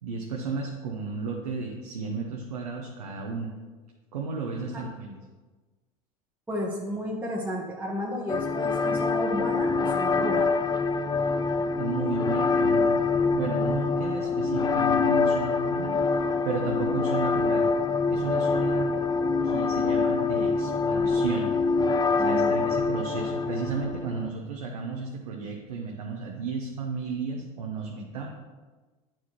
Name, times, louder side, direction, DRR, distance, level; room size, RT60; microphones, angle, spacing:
voice 1, 0.0-3.5 4.1-5.2 11.8-13.0 13.3-16.0 16.4-17.7 18.1-18.9 19.4-21.5 22.2-28.3, right 4 dB, 90° right, -1 dB, 0.8 m, -33 dB
voice 2, 4.5-4.9 6.5-10.5 22.2-22.8, equal, 10° right, -3 dB, 1.0 m, -32 dB
sound 1, 8.3-24.3, left 4 dB, 20° left, 0.4 m, -25 dB
9.2 x 4.5 x 3.0 m, 1.3 s
hypercardioid pair, 80°, 19 cm